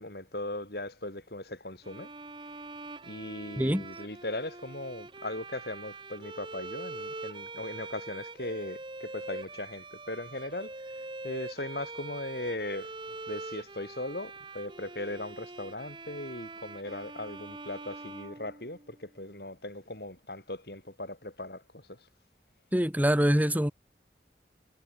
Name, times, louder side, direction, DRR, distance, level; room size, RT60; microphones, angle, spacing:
voice 1, 0.0-2.1 3.0-22.1, left 1 dB, 65° left, 6.7 m, -39 dB
Bowed string instrument, 1.8-19.1, right 3 dB, 25° right, 1.5 m, -43 dB
voice 2, 22.7-23.7, equal, 10° right, 2.1 m, -24 dB
head